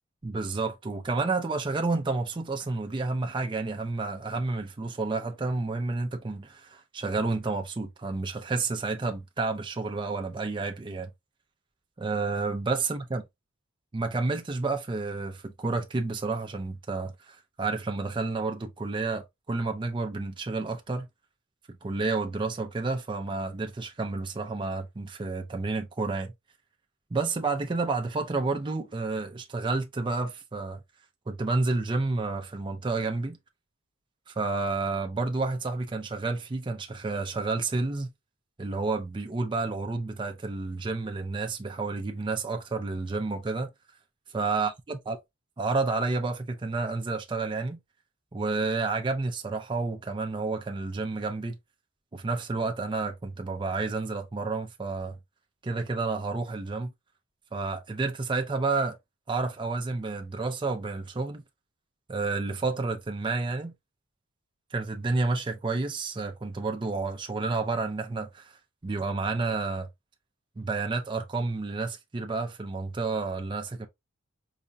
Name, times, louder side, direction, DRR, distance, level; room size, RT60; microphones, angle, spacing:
voice 1, 0.2-11.1 12.0-13.2 13.9-21.1 21.7-26.3 27.1-30.8 31.3-33.4 34.3-38.1 38.6-43.7 44.3-45.2 45.6-47.8 48.3-51.6 52.1-55.2 55.6-56.9 57.5-59.0 59.3-61.4 62.1-63.7 64.7-68.5 68.8-69.9 70.6-73.9, right 3 dB, 20° right, 0.4 m, -30 dB
4.8 x 2.2 x 2.6 m
head